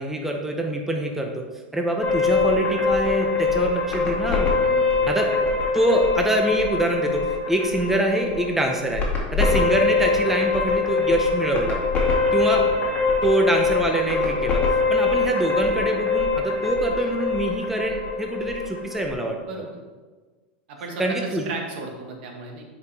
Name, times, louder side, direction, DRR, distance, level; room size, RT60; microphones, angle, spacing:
voice 1, 0.0-1.4 1.7-4.5 5.1-5.3 5.7-9.0 9.3-11.8 12.3-12.7 13.2-19.4 21.0-21.4, right 1 dB, 5° right, 2 dB, 0.7 m, -24 dB
sound 1, 2.0-19.1, left 4 dB, 25° left, 2.1 m, -23 dB
voice 2, 4.6-5.1 19.3-19.7 20.7-22.6, right 3 dB, 70° right, 2 dB, 1.6 m, -35 dB
9.5 x 5.0 x 3.4 m, 1.4 s
supercardioid pair, 125°, 6 cm